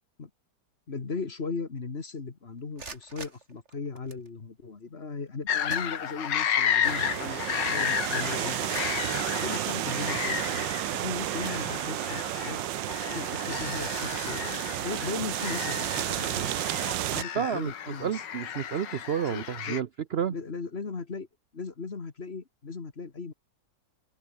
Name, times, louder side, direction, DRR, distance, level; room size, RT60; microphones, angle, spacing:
voice 1, 0.9-8.7 9.4-12.6 13.1-16.6 17.1-18.2 19.3-19.8 20.3-21.3 21.5-23.3, left 4 dB, 35° left, 1.8 m, -37 dB
sound 1, 2.6-4.3 5.3-5.4 5.7-6.6 6.9-7.0 7.6-7.7 8.2-10.1 10.7-10.9 11.4-12.2, right 4 dB, 40° right, 2.6 m, -46 dB
sound 2, 5.5-19.8, left 8 dB, 75° left, 2.0 m, -33 dB
sound 3, 6.8-17.2, right 16 dB, 85° right, 1.3 m, -32 dB
voice 2, 17.4-17.7 18.0-20.3, right 8 dB, 60° right, 0.6 m, -30 dB
open air
omnidirectional pair, 2.0 m